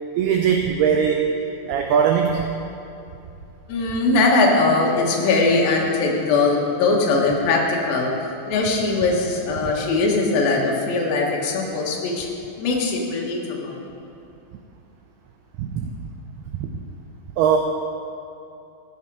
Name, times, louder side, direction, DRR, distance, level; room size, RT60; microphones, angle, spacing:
voice 1, 0.2-1.3 1.7-2.4 15.6-15.9 16.6-16.7 17.4-17.6, right 7 dB, 85° right, 3 dB, 2.2 m, -20 dB
voice 2, 3.7-8.1 8.5-12.3 12.6-13.9, left 3 dB, 60° left, -2 dB, 3.0 m, -20 dB
15.0 x 9.6 x 4.8 m, 2.7 s
omnidirectional pair, 5.3 m